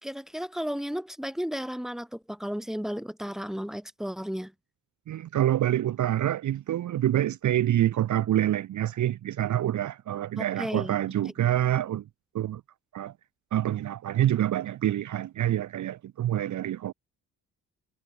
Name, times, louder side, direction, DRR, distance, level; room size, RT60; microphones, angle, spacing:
voice 1, 0.0-4.5 10.4-11.0, equal, ahead, 4.0 m, -34 dB
voice 2, 5.1-12.0 12.3-12.6 12.9-13.1 13.5-16.9, right 12 dB, 60° right, 0.7 m, -26 dB
wide cardioid pair, 135°, 33 cm